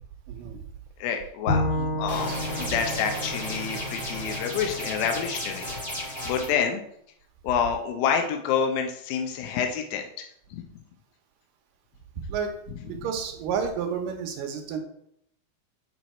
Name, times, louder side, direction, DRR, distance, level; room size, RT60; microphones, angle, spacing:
voice 1, 0.3-0.7 1.7-2.4 6.2-6.6 12.2-14.8, right 6 dB, 75° right, 5 dB, 2.4 m, -32 dB
voice 2, 1.0-1.7 2.0-2.3 2.6-6.8 7.4-10.3 10.5-10.8, left 7 dB, 80° left, 4 dB, 2.5 m, -28 dB
Bowed string instrument, 1.5-4.7, left 1 dB, 65° left, 0.8 m, -31 dB
sound 1, 2.1-6.5, equal, 20° left, 1.7 m, -34 dB
7.7 x 4.6 x 4.2 m, 0.71 s
omnidirectional pair, 4.1 m